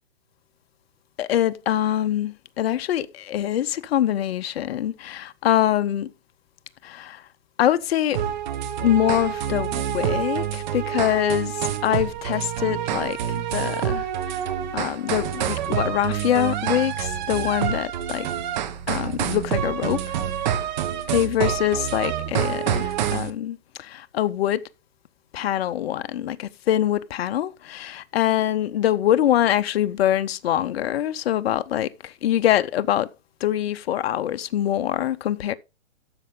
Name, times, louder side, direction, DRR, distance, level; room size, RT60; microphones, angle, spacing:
voice 1, 1.2-6.1 6.8-7.2 7.6-8.2 8.8-14.1 14.7-18.3 18.9-20.0 21.1-24.6 25.3-33.1 33.4-35.5, left 11 dB, 50° left, 0.8 m, -24 dB
sound 1, 8.1-23.3, right 10 dB, 35° right, 1.1 m, -27 dB
12.5 x 6.8 x 3.7 m
hypercardioid pair, 155°, 40 cm